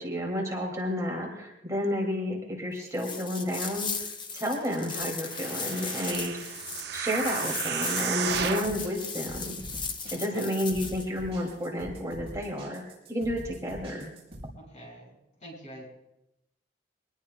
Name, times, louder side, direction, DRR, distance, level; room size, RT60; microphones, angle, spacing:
voice 1, 0.0-4.1 4.3-6.6 6.9-9.6 10.1-12.8 13.1-14.1, equal, 20° right, -1 dB, 2.3 m, -31 dB
sound 1, 2.9-11.0, left 5 dB, 25° left, 0.9 m, -37 dB
sound 2, 5.2-8.8 9.4-9.5, right 7 dB, 65° right, 0.8 m, -33 dB
sound 3, 8.3-14.5, right 1 dB, 35° right, 6.6 m, -44 dB
voice 2, 10.1-10.6 14.6-15.9, equal, 45° left, -2 dB, 6.1 m, -47 dB
24.0 x 20.0 x 2.2 m, 0.91 s
head